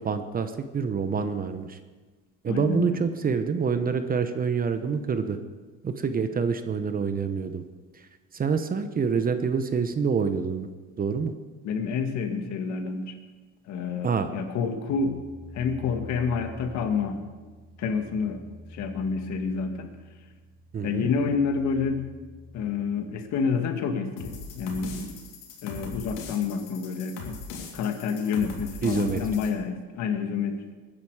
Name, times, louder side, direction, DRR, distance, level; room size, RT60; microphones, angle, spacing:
voice 1, 0.0-1.8 2.4-5.4 5.8-7.6 7.9-8.1 8.3-10.7 11.0-11.3 14.0-14.3 20.7-21.1 28.8-29.2, right 5 dB, 30° right, 10 dB, 0.9 m, -27 dB
voice 2, 2.5-3.0 11.6-13.2 13.7-15.2 15.5-17.2 17.8-18.4 18.7-19.9 20.8-22.0 22.5-25.1 25.6-30.6, left 5 dB, 60° left, 6 dB, 1.9 m, -28 dB
sound 1, 14.9-23.4, left 2 dB, 80° right, 4.1 m, -47 dB
sound 2, 24.2-29.5, left 4 dB, 85° left, 3.4 m, -40 dB
20.5 x 10.5 x 4.9 m, 1.3 s
cardioid pair, 130°, 31 cm